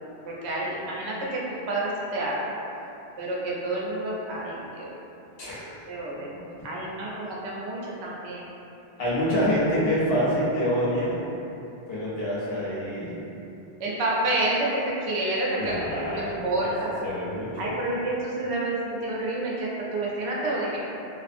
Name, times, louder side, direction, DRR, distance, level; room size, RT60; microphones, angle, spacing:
voice 1, 0.3-1.4 1.7-2.5 3.2-4.9 5.9-6.3 6.6-8.5 13.8-15.7 16.0-16.9 17.6-20.8, right 2 dB, 85° right, -4 dB, 0.8 m, -29 dB
voice 2, 5.4-5.7 6.3-6.4 9.0-11.2 11.9-13.3 15.6-16.7 17.0-17.8, equal, 70° left, -8 dB, 0.9 m, -27 dB
2.5 x 2.4 x 2.5 m, 2.9 s
omnidirectional pair, 1.1 m